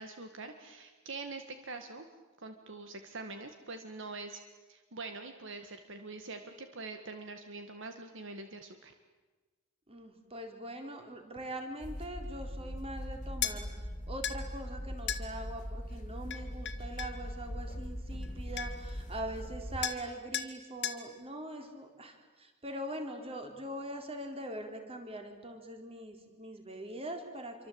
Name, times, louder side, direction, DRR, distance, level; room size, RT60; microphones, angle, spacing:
voice 1, 0.0-2.0 2.4-4.4 4.7-8.9, right 3 dB, 60° right, 7 dB, 1.9 m, -44 dB
voice 2, 9.9-13.7 14.1-27.7, right 1 dB, 25° right, 5 dB, 3.9 m, -42 dB
sound 1, 11.8-19.8, equal, 35° left, 2.6 m, -41 dB
sound 2, 13.4-13.6 14.2-14.4 15.1-15.3 16.3-17.2 18.2-18.3 18.6-18.9 19.8-20.1 20.3-20.5 20.8-21.0, left 10 dB, 55° left, 2.0 m, -35 dB
27.5 x 24.5 x 8.8 m, 1.3 s
head